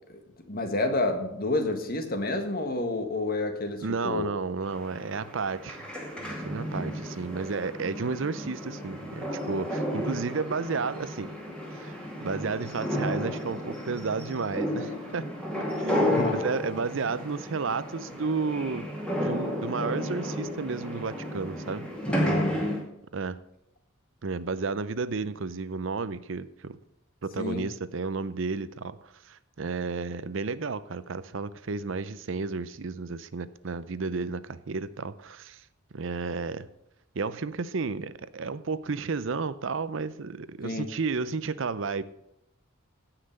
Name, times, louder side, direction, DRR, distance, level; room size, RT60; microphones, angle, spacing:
voice 1, 0.5-4.3 16.1-16.4 22.1-22.7 27.4-27.7 40.6-40.9, left 2 dB, 45° left, 6 dB, 1.6 m, -29 dB
voice 2, 3.8-5.8 6.2-11.3 11.7-15.3 15.8-18.9 19.2-21.9 23.1-23.4 24.2-26.8 27.2-35.6 35.9-36.7 37.1-42.0, right 4 dB, 65° right, 15 dB, 0.6 m, -32 dB
sound 1, 4.6-22.8, equal, 5° left, 2.4 m, -32 dB
16.5 x 5.9 x 6.7 m, 0.80 s
head